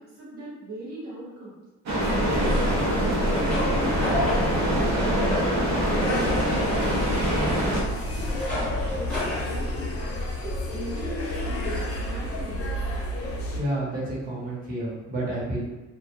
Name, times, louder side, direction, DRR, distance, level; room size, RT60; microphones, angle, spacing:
voice 1, 0.0-1.6 2.1-5.1 5.5-6.9 7.2-9.9 10.4-12.6, right 2 dB, 85° right, -7 dB, 1.2 m, -39 dB
sound 1, 1.9-7.8, equal, 65° right, 0.7 m, -25 dB
sound 2, 2.0-13.6, equal, 50° left, 0.6 m, -29 dB
sound 3, 2.8-10.5, left 1 dB, 5° left, 0.9 m, -35 dB
voice 2, 13.5-15.6, right 1 dB, 30° right, -6 dB, 0.9 m, -30 dB
2.2 x 2.1 x 3.0 m, 1.1 s
cardioid pair, 90°, 30 cm